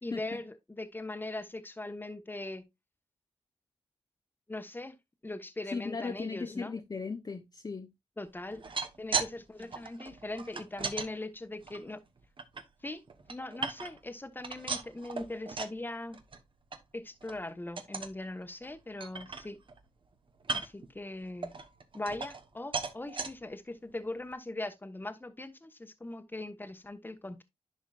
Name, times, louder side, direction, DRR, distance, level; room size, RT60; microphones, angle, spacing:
voice 1, 0.0-2.7 4.5-5.0 5.2-6.7 8.2-8.6 9.0-12.0 12.8-13.0 13.3-16.2 16.9-19.6 20.5-21.5 21.9-27.4, left 2 dB, 20° left, 1.2 m, -40 dB
voice 2, 5.7-7.9, left 4 dB, 40° left, 0.8 m, -37 dB
sound 1, 8.5-9.3 9.6-11.1 11.6-12.6 13.1-14.1 14.4-15.8 16.1-16.4 16.7-16.8 17.2-17.4 17.8-18.2 18.6-18.7 19.0-19.8 20.4-20.9 21.4-22.5 22.7-23.3 23.9-24.0 24.3-24.4, right 4 dB, 55° right, 1.1 m, -37 dB
11.0 x 5.0 x 2.4 m
cardioid pair, 65°, 10 cm